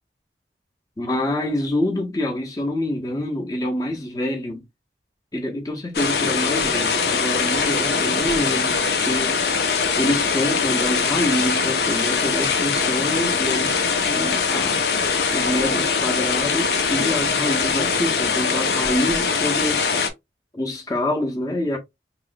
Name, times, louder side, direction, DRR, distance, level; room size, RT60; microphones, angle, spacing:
voice 1, 1.0-4.6 5.3-9.4 9.7-13.7 14.1-14.9 15.3-19.8 20.5-21.8, left 1 dB, 20° left, 0.7 m, -26 dB
sound 1, 5.9-20.1, left 5 dB, 65° left, 0.6 m, -22 dB
3.2 x 2.9 x 2.5 m
head